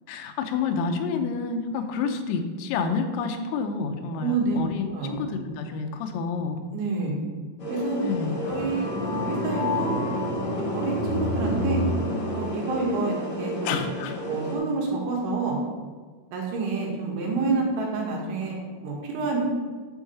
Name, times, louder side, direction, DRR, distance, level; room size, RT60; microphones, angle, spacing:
voice 1, 0.1-6.6 8.0-8.4 13.7-14.2, left 5 dB, 90° left, 6 dB, 3.6 m, -29 dB
voice 2, 4.2-4.6 4.9-5.2 6.7-7.1 7.7-8.0 8.5-10.0 10.7-11.8 12.3-13.5 14.2-15.6 16.3-19.4, right 4 dB, 70° right, -1 dB, 3.9 m, -28 dB
sound 1, 7.6-14.6, equal, 35° left, 4.0 m, -31 dB
sound 2, 8.4-12.4, left 2 dB, 70° left, 3.7 m, -31 dB
9.9 x 4.9 x 6.8 m, 1.5 s
omnidirectional pair, 5.9 m